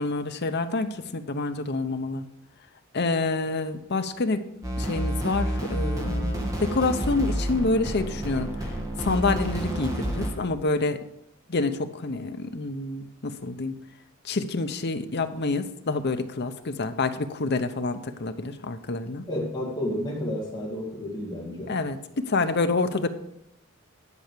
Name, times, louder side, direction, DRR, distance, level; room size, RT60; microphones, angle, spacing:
voice 1, 0.0-2.3 2.9-4.5 4.8-8.7 9.0-11.0 11.5-13.7 14.2-19.2 21.7-23.1, left 3 dB, 55° left, 9 dB, 0.8 m, -27 dB
sound 1, 4.6-10.3, right 1 dB, 15° right, 2.2 m, -29 dB
voice 2, 19.3-21.7, left 1 dB, 20° left, -6 dB, 2.2 m, -31 dB
11.0 x 5.8 x 6.7 m, 0.81 s
head